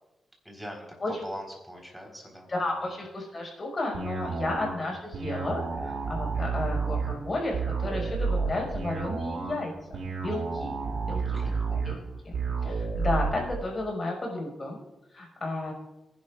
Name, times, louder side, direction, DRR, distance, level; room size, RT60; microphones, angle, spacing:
voice 1, 0.4-3.0 4.4-4.5 11.2-11.7, equal, 5° right, 0 dB, 4.0 m, -43 dB
voice 2, 2.5-10.7 11.1-11.4 11.7-12.0 12.2-14.8 15.1-15.7, left 2 dB, 35° left, 0 dB, 5.2 m, -33 dB
sound 1, 3.9-13.5, right 4 dB, 70° right, 4.5 m, -31 dB
25.5 x 11.0 x 2.4 m, 0.99 s
cardioid pair, 85°, 0 cm